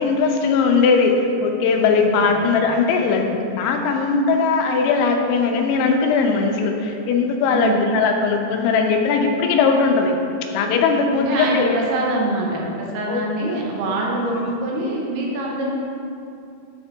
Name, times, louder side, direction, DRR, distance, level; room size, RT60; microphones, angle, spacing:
voice 1, 0.0-10.2 10.5-11.8 13.1-13.6 14.1-14.5, left 4 dB, 90° left, 3 dB, 2.8 m, -19 dB
voice 2, 2.0-2.4 7.5-7.8 11.1-15.8, right 2 dB, 80° right, -2 dB, 2.9 m, -25 dB
9.5 x 5.6 x 3.4 m, 2.6 s
omnidirectional pair, 4.7 m